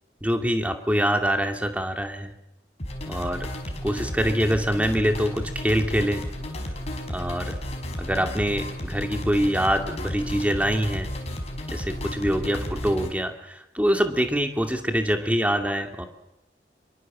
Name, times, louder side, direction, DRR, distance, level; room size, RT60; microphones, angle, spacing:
voice 1, 0.2-2.3 3.1-3.5 3.8-6.2 7.1-7.6 8.0-11.1 11.7-16.1, equal, 10° right, 5 dB, 2.4 m, -25 dB
sound 1, 2.8-13.1, equal, 35° left, 5.3 m, -33 dB
25.5 x 23.0 x 7.5 m, 0.87 s
head